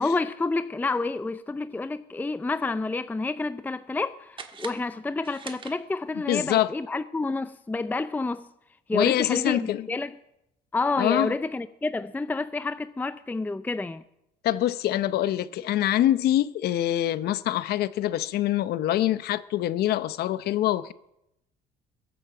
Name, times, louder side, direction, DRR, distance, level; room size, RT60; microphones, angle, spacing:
voice 1, 0.0-8.5 8.9-10.1 10.7-14.0, left 3 dB, 10° left, 0.5 m, -29 dB
sound 1, 4.3-6.3, right 5 dB, 30° right, 1.4 m, -44 dB
voice 2, 6.3-6.7 8.9-9.9 11.0-11.4 14.4-20.9, left 13 dB, 70° left, 0.8 m, -25 dB
21.5 x 8.7 x 7.5 m
cardioid pair, 110°, 17 cm